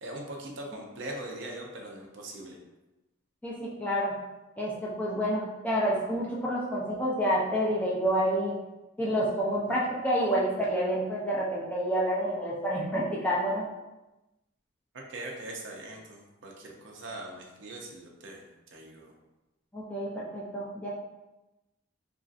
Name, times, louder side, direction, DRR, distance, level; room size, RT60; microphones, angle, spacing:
voice 1, 0.0-2.6 15.1-18.4 18.7-19.1, right 1 dB, 60° right, 0 dB, 0.5 m, -41 dB
voice 2, 3.4-4.1 4.6-8.6 9.0-13.6 19.7-20.9, equal, 5° left, -6 dB, 0.4 m, -28 dB
3.0 x 2.5 x 2.4 m, 1.0 s
head